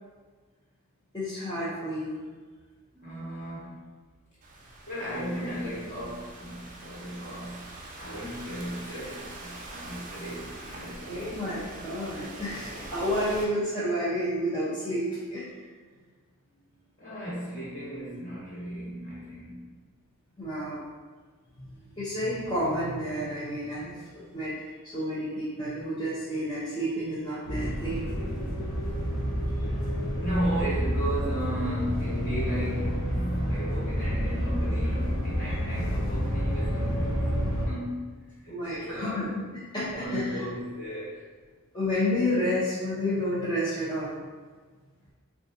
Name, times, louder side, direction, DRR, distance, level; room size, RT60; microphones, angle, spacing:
voice 1, 1.1-2.2 11.0-15.5 20.4-20.8 21.6-21.7 22.0-23.9 24.3-24.5 24.9-28.2 38.5-39.3 39.7-40.4 41.7-44.2, equal, 20° left, -13 dB, 0.7 m, -30 dB
voice 2, 2.9-3.8 4.8-11.6 16.5-16.6 17.0-19.7 30.2-39.2 39.7-41.3, equal, 40° left, -10 dB, 1.4 m, -35 dB
Thunderstorm / Rain, 4.4-13.4, right 2 dB, 40° right, 0.4 m, -43 dB
sound 1, 27.5-37.7, equal, 60° left, 0.7 m, -29 dB
3.9 x 2.3 x 2.6 m, 1.4 s
head